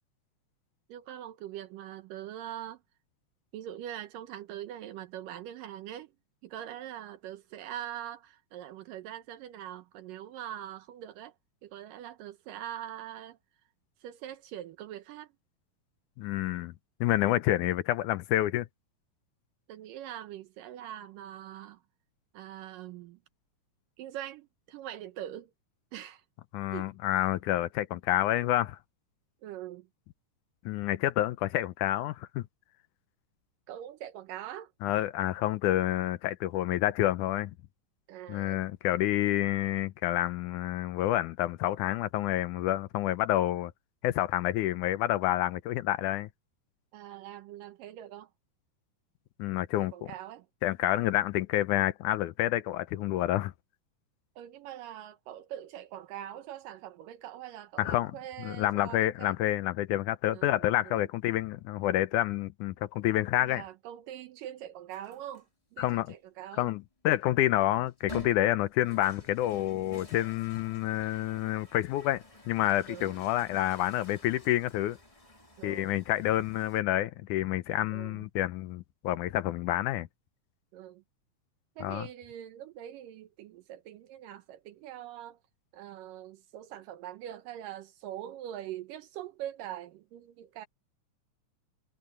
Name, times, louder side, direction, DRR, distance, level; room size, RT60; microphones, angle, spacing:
voice 1, 0.9-2.8 3.5-6.1 6.4-11.4 11.6-13.4 14.0-15.3 19.7-21.8 22.3-23.2 24.0-25.5 25.9-26.2 26.7-26.9 29.4-29.9 33.7-34.7 38.1-38.6 46.9-48.3 49.8-50.5 54.4-59.4 60.3-61.1 63.4-66.7 72.9-73.2 75.6-76.0 77.9-78.2 80.7-81.0 81.8-85.4 85.7-90.7, right 11 dB, 80° right, 2.6 m, -43 dB
voice 2, 16.2-16.7 17.0-18.7 26.5-28.8 30.7-32.5 34.8-37.5 38.3-43.7 44.0-46.3 49.4-49.9 50.6-53.5 57.8-58.1 58.4-63.6 65.8-66.1 66.6-75.0 75.6-80.1 81.8-82.1, left 14 dB, 75° left, 2.0 m, -28 dB
sound 1, 64.9-65.4 66.1-66.2 67.9-76.8, left 3 dB, 15° left, 1.2 m, -50 dB
omnidirectional pair, 3.8 m